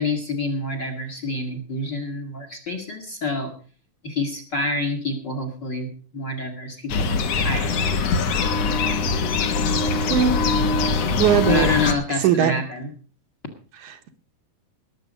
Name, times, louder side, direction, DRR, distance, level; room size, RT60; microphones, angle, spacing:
voice 1, 0.0-3.5 4.0-5.9 6.1-7.8 11.4-12.9, left 2 dB, 45° left, 6 dB, 1.7 m, -27 dB
sound 1, 6.9-11.9, left 4 dB, 60° left, 2.0 m, -22 dB
voice 2, 11.2-11.7 12.1-12.5 13.8-14.1, right 9 dB, 70° right, 6 dB, 2.4 m, -20 dB
20.0 x 7.5 x 5.2 m, 0.39 s
omnidirectional pair, 3.9 m